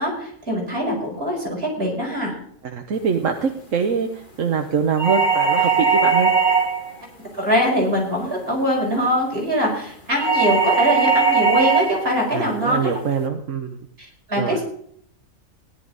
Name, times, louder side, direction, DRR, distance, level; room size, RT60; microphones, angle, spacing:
voice 1, 0.0-2.3 7.3-12.9 14.3-14.6, equal, 45° right, -2 dB, 5.0 m, -22 dB
voice 2, 2.6-6.3 12.3-13.9 14.4-14.6, right 6 dB, 65° right, 3 dB, 1.4 m, -24 dB
sound 1, 5.0-6.9 10.2-12.0, right 5 dB, 35° left, 2.3 m, -18 dB
17.0 x 11.0 x 4.0 m, 0.64 s
omnidirectional pair, 1.4 m